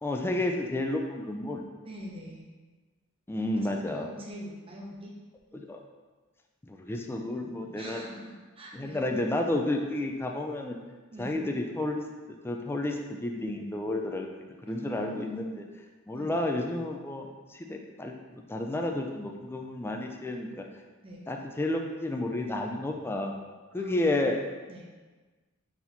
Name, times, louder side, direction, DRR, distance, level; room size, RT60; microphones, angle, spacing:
voice 1, 0.0-1.6 3.3-4.1 5.5-5.8 6.6-8.0 8.7-10.8 11.2-12.0 12.4-15.6 16.1-18.1 18.5-20.6 21.3-23.3 23.7-24.4, left 1 dB, 10° left, 2 dB, 0.3 m, -31 dB
voice 2, 1.8-2.4 3.5-5.1 7.8-9.0 11.1-11.4 14.7-15.6 16.1-16.3 21.0-21.2 23.8-24.3 24.7-24.9, equal, 25° right, -3 dB, 0.7 m, -43 dB
4.0 x 2.9 x 4.0 m, 1.3 s
head